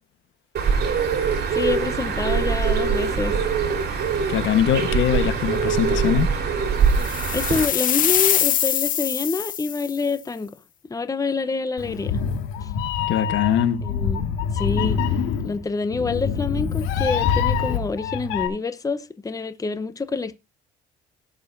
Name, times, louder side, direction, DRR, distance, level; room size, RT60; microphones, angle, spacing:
Bird, 0.5-7.7, right 6 dB, 55° right, 3.8 m, -23 dB
voice 1, 1.5-3.4 7.3-10.6 10.9-12.2 12.6-12.7 13.8-15.0 15.4-20.4, left 4 dB, 15° left, 0.9 m, -27 dB
voice 2, 4.3-6.3 13.1-13.8, left 9 dB, 70° left, 1.3 m, -22 dB
sound 1, 7.0-10.0, left 10 dB, 45° left, 0.4 m, -23 dB
Meow, 11.8-18.5, left 7 dB, 90° left, 2.0 m, -25 dB
18.0 x 6.7 x 2.6 m
cardioid pair, 95°, 20 cm